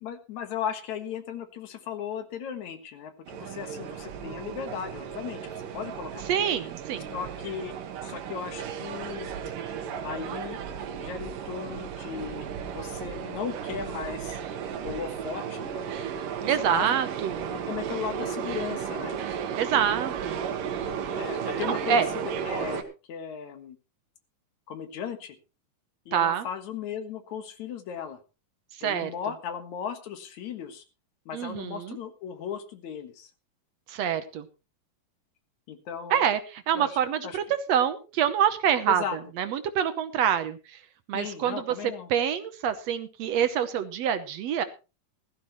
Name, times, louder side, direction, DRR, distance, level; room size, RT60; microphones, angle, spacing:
voice 1, 0.0-6.3 7.1-7.7 8.0-9.4 10.0-10.6 10.9-14.4 14.8-15.9 16.7-17.0 17.7-19.2 21.1-22.0 22.5-22.8 23.1-23.8 24.7-25.4 26.1-28.2 28.8-30.8 31.3-33.3 35.7-36.3 36.7-37.0 37.2-37.4 38.9-39.2 41.1-42.1, left 8 dB, 65° left, 8 dB, 2.7 m, -36 dB
sound 1, 3.3-22.8, right 7 dB, 90° right, 3.0 m, -34 dB
voice 2, 6.3-7.1 16.5-17.5 19.6-20.4 21.6-22.1 26.1-26.5 28.8-29.1 31.3-32.0 33.9-34.5 36.1-39.0 39.4-40.8 41.1-41.8 42.1-44.6, right 9 dB, 65° right, 11 dB, 1.8 m, -26 dB
16.0 x 14.0 x 3.1 m, 0.31 s
omnidirectional pair, 3.7 m